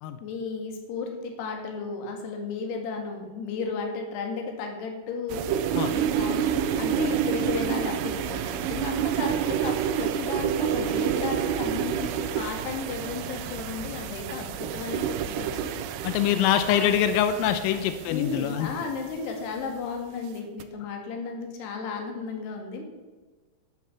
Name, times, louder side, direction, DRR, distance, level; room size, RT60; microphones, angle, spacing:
voice 1, 0.2-15.7 16.7-16.9 18.1-22.8, left 5 dB, 60° left, 3 dB, 3.7 m, -34 dB
sound 1, 5.3-19.1 20.4-20.6, right 9 dB, 85° right, 3.2 m, -29 dB
voice 2, 16.0-18.7, left 10 dB, 90° left, 10 dB, 3.4 m, -24 dB
12.0 x 9.8 x 7.1 m, 1.3 s
omnidirectional pair, 5.9 m